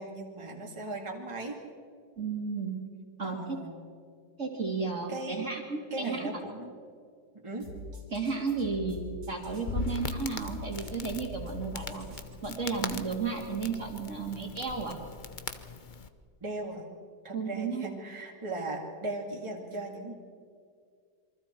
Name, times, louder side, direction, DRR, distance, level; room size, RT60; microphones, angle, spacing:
voice 1, 0.0-1.6 3.2-3.8 5.1-5.5 5.9-6.7 7.4-7.7 16.4-16.9 17.2-20.1, right 2 dB, 15° right, -1 dB, 2.3 m, -38 dB
voice 2, 2.2-2.8 3.2-3.6 4.4-6.3 8.1-9.0 9.3-12.1 12.4-15.0 17.3-17.8, right 4 dB, 40° right, 1 dB, 2.7 m, -33 dB
sound 1, 7.6-12.5, equal, 90° right, 4.5 m, -44 dB
Crackle, 9.4-16.1, left 5 dB, 45° left, 0.6 m, -39 dB
27.5 x 23.5 x 4.5 m, 2.2 s
omnidirectional pair, 2.0 m